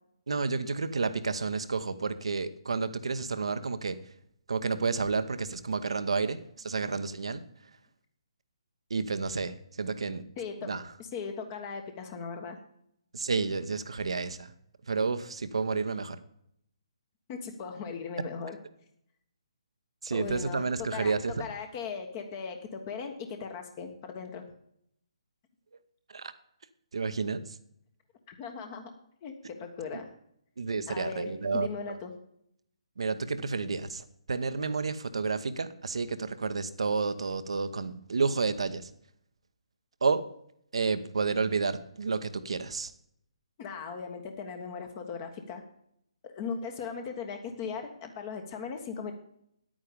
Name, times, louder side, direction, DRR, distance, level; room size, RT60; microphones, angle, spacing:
voice 1, 0.3-4.0 4.5-7.4 8.9-10.2 10.6-10.8 13.1-14.5 14.9-16.2 20.0-21.4 26.1-26.3 26.9-27.6 30.6-31.7 33.0-38.9 40.0-40.2 40.7-42.9, right 4 dB, 65° right, 12 dB, 1.0 m, -30 dB
voice 2, 10.4-10.7 11.0-12.6 17.3-18.6 20.1-20.6 20.9-21.1 21.4-24.4 28.3-28.9 29.2-29.3 29.6-30.1 30.9-32.1 43.6-45.6 46.3-49.1, left 5 dB, 30° left, 5 dB, 1.4 m, -38 dB
10.5 x 9.0 x 5.1 m, 0.72 s
figure-of-eight pair, 140°, 3 cm